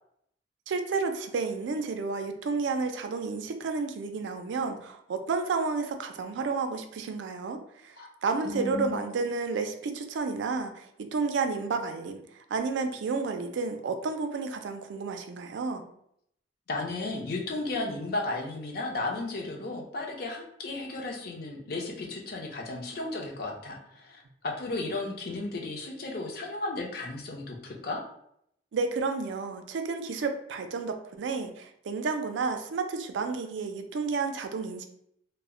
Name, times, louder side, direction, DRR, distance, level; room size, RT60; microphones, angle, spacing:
voice 1, 0.7-8.0 8.2-15.8 28.7-34.8, right 4 dB, 75° right, 7 dB, 0.3 m, -31 dB
voice 2, 8.4-9.0 16.7-28.0, left 2 dB, 55° left, 0 dB, 0.5 m, -34 dB
2.0 x 2.0 x 3.6 m, 0.72 s
head